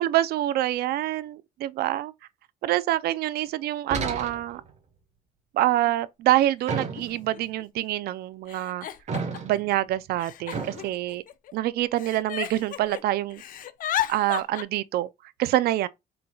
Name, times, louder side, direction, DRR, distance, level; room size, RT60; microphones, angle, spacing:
voice 1, 0.0-2.1 2.6-4.6 5.5-8.9 9.4-11.2 11.5-13.4 14.1-15.1 15.4-15.9, right 14 dB, 70° right, 0.4 m, -26 dB
sound 1, 3.9-4.7 6.7-7.4 9.1-9.7 10.5-10.9, right 5 dB, 40° right, 1.2 m, -32 dB
Giggle, 5.9-6.0 6.9-7.0 7.3-7.8 8.5-9.6 10.2-11.5 12.0-13.0 13.3-14.6, left 11 dB, 55° left, 0.5 m, -33 dB
4.5 x 3.9 x 2.3 m
cardioid pair, 110°, 17 cm